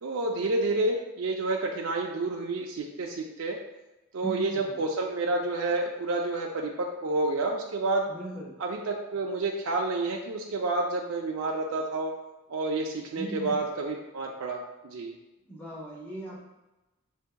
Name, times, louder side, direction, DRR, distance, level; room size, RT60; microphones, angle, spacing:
voice 1, 0.0-3.6 4.1-8.1 8.6-12.1 12.5-15.1, right 2 dB, 75° right, 0 dB, 0.4 m, -29 dB
voice 2, 4.2-4.8 8.1-8.5 13.2-13.6 15.5-16.4, right 1 dB, 10° left, -4 dB, 0.9 m, -38 dB
6.7 x 2.7 x 2.2 m, 1.0 s
head